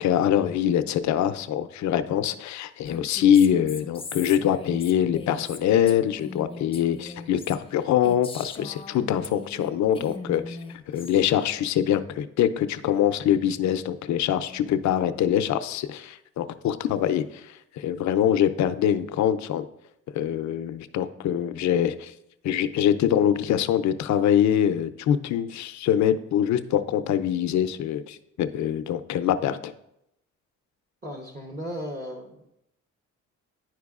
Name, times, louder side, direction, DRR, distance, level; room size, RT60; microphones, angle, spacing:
voice 1, 0.0-10.6 10.9-19.7 20.1-22.1 22.4-29.7, left 10 dB, 70° left, 11 dB, 0.5 m, -24 dB
Female speech woman speaking, 2.8-9.7 9.9-11.2, left 3 dB, 20° left, 0.6 m, -40 dB
voice 2, 31.0-32.5, equal, 30° right, -2 dB, 0.9 m, -36 dB
10.5 x 4.5 x 2.4 m, 0.83 s
cardioid pair, 90°, 30 cm